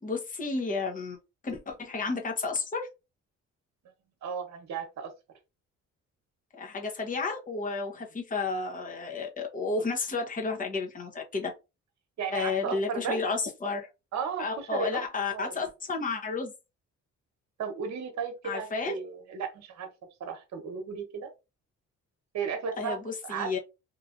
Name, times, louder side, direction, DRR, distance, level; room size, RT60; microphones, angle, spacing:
voice 1, 0.0-1.2 1.4-2.9 6.5-11.5 12.3-13.9 14.4-16.5 18.4-19.0 22.8-23.6, left 4 dB, 25° left, 0.9 m, -32 dB
voice 2, 4.2-5.1 12.2-13.2 14.1-15.0 15.3-15.6 17.6-19.9 20.2-21.3 22.3-23.0 23.2-23.6, right 6 dB, 65° right, 1.1 m, -34 dB
2.9 x 2.5 x 2.5 m
cardioid pair, 90°, 30 cm